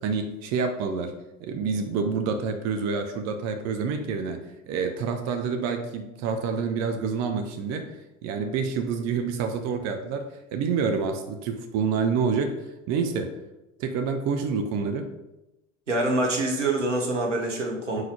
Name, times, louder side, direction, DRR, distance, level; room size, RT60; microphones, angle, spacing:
voice 1, 0.0-7.9 8.2-12.5 12.9-13.3 13.8-15.1 18.0-18.1, right 5 dB, 50° right, 6 dB, 0.8 m, -28 dB
voice 2, 15.9-18.0, right 2 dB, 90° right, 0 dB, 1.2 m, -25 dB
4.8 x 3.9 x 5.6 m, 0.95 s
figure-of-eight pair, 70°, 35 cm